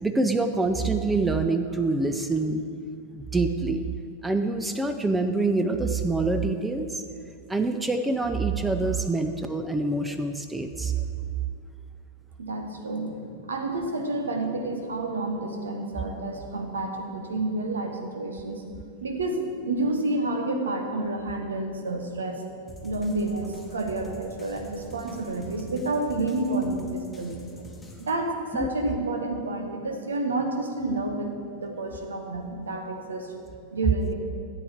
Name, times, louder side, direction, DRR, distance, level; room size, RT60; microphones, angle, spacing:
voice 1, 0.0-2.6 3.1-3.8 4.2-7.0 7.5-10.9 28.6-28.7, right 3 dB, 10° right, 7 dB, 0.6 m, -26 dB
voice 2, 12.4-18.6 19.0-22.4 22.8-27.4 28.0-33.3 33.7-34.1, right 2 dB, 70° right, 4 dB, 1.3 m, -29 dB
sound 1, 22.7-28.2, right 1 dB, 5° left, 1.4 m, -45 dB
13.5 x 8.4 x 4.5 m, 2.4 s
figure-of-eight pair, 90°, 0 cm